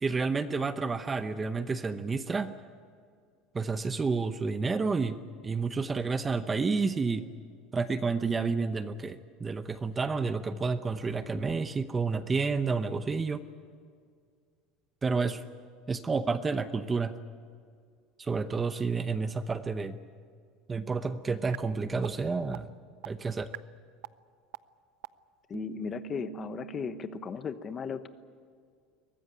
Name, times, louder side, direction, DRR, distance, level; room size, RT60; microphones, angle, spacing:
voice 1, 0.0-2.5 3.5-7.2 7.7-13.4 15.0-15.4 15.9-17.2 18.2-20.0 20.7-22.7 23.0-23.5, right 4 dB, 15° right, 11 dB, 0.8 m, -30 dB
sound 1, 21.5-21.6 22.0-22.1 22.5-22.6 23.0-23.1 23.5-23.6 24.0-24.1 24.5-24.6 25.0-25.1 25.5-27.3, right 17 dB, 85° right, 0.6 m, -42 dB
voice 2, 25.5-28.1, left 7 dB, 25° left, 11 dB, 1.0 m, -36 dB
23.0 x 19.5 x 9.0 m, 2.1 s
cardioid pair, 155°, 0 cm